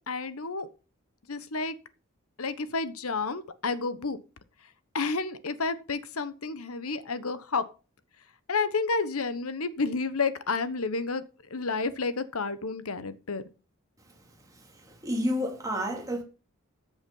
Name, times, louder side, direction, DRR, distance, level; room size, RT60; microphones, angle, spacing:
voice 1, 0.1-0.7 1.3-1.8 2.4-4.2 4.9-7.7 8.5-11.2 11.5-13.4, left 4 dB, 90° left, 1.2 m, -30 dB
voice 2, 14.9-16.2, equal, 15° right, 2.6 m, -30 dB
14.0 x 7.0 x 5.5 m
head